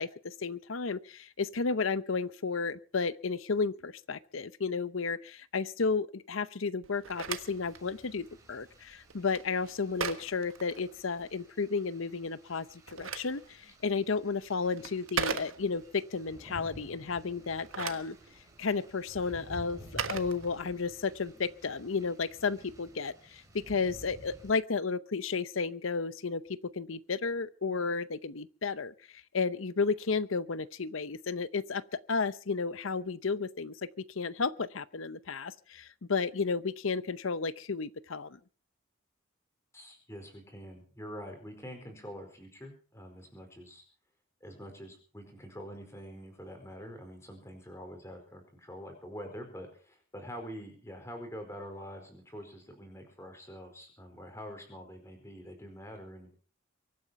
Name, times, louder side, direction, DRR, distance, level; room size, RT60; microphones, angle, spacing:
voice 1, 0.0-18.2 18.6-38.4, left 4 dB, 75° left, 16 dB, 0.8 m, -33 dB
Telephone, 6.8-11.4 12.6-16.0 17.4-21.0, right 6 dB, 80° right, 1.4 m, -40 dB
sound 1, 7.1-24.5, right 1 dB, 15° right, 4.6 m, -53 dB
voice 2, 39.7-43.8 44.4-56.4, equal, 15° left, 4 dB, 4.7 m, -45 dB
24.0 x 9.4 x 5.9 m, 0.40 s
head